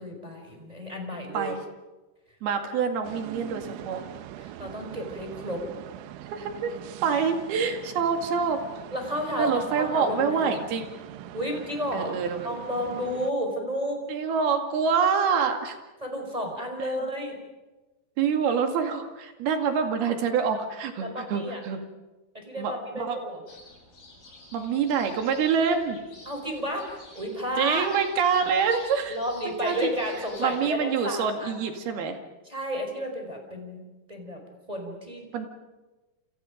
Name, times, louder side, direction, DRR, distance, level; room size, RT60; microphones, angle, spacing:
voice 1, 0.0-1.5 4.4-5.6 8.9-10.5 11.3-12.1 12.4-14.0 16.0-17.4 21.0-21.6 22.3-23.4 26.2-27.9 28.4-28.5 29.1-31.5 32.4-33.8 34.1-34.4 34.7-35.2, equal, 10° right, 2 dB, 4.7 m, -32 dB
voice 2, 2.4-4.0 6.3-8.6 9.4-10.9 11.9-12.5 14.1-15.8 16.8-16.9 18.2-21.8 22.6-23.2 24.5-26.0 27.6-29.2 29.6-29.9 30.4-32.2 35.3-35.5, right 6 dB, 60° right, 5 dB, 3.8 m, -26 dB
sound 1, 3.0-13.3, right 13 dB, 90° right, 3.4 m, -42 dB
sound 2, 23.5-30.7, left 2 dB, 45° left, 9.1 m, -50 dB
28.5 x 28.0 x 5.2 m, 1.1 s
omnidirectional pair, 5.3 m